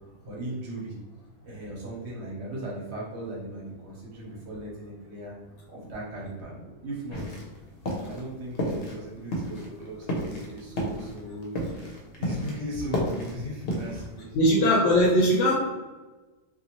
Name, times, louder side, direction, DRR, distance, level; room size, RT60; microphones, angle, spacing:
voice 1, 0.2-0.9 1.4-5.3 5.7-7.3 8.0-11.6 12.2-14.9, right 1 dB, 70° right, -4 dB, 1.2 m, -38 dB
sound 1, 7.1-7.6 7.8-8.2 8.5-9.0 9.3-12.6 12.8-14.1, equal, 60° left, 0.9 m, -31 dB
voice 2, 14.3-15.5, equal, 85° left, -3 dB, 0.9 m, -20 dB
2.6 x 2.4 x 2.9 m, 1.2 s
omnidirectional pair, 1.2 m